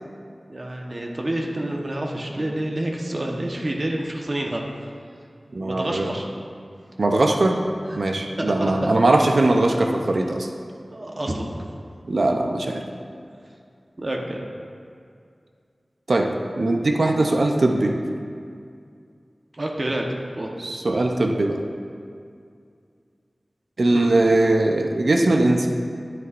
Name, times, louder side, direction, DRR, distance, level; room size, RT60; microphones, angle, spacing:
voice 1, 0.5-4.6 5.6-6.3 7.9-8.0 8.4-8.9 10.9-11.5 14.0-14.4 19.5-20.0 20.3-20.5 23.9-24.1, right 1 dB, 45° right, 0 dB, 1.1 m, -28 dB
voice 2, 5.5-6.1 7.0-7.6 8.0-10.5 12.1-12.8 16.1-16.3 16.6-17.9 20.6-21.6 23.8-25.7, right 2 dB, 75° right, 2 dB, 0.6 m, -20 dB
11.0 x 9.2 x 2.6 m, 2.3 s
wide cardioid pair, 60°, 0 cm